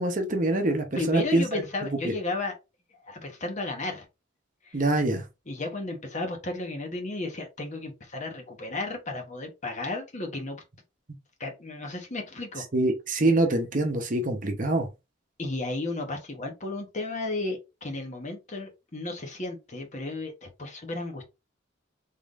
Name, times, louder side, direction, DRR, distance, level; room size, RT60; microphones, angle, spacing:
voice 1, 0.0-1.6 2.0-2.1 4.7-5.2 12.7-14.9, right 2 dB, 40° right, 0.8 m, -25 dB
voice 2, 1.0-2.6 3.0-4.0 4.6-4.8 5.5-10.6 11.4-12.7 15.4-21.2, left 2 dB, 35° left, 1.1 m, -33 dB
3.7 x 3.6 x 2.5 m
head